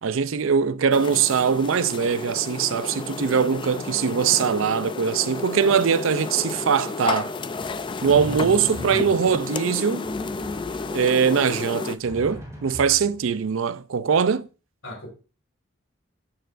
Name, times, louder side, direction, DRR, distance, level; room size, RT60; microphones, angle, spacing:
voice 1, 0.0-7.3 8.0-10.1 10.9-14.5, right 6 dB, 75° right, 0.5 m, -22 dB
sound 1, 0.9-12.0, left 3 dB, 25° left, 0.4 m, -32 dB
Drum, 7.6-9.5 10.0-11.4 12.0-13.5, equal, 15° right, 2.3 m, -42 dB
voice 2, 8.1-9.1 14.8-15.1, equal, 70° left, 4.4 m, -34 dB
12.5 x 6.8 x 2.5 m
head